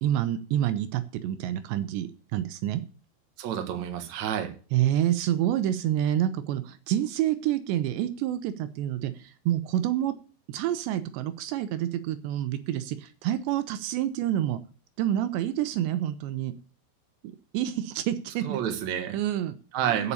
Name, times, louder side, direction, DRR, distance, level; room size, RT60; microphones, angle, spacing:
voice 1, 0.0-2.8 4.7-10.1 10.5-14.6 15.0-16.5 17.5-18.6 19.1-19.6 20.0-20.1, right 12 dB, 85° right, 12 dB, 3.0 m, -28 dB
voice 2, 3.4-4.5 18.4-19.2 19.7-20.1, right 9 dB, 55° right, 6 dB, 2.3 m, -29 dB
8.3 x 7.1 x 8.4 m, 0.37 s
omnidirectional pair, 5.1 m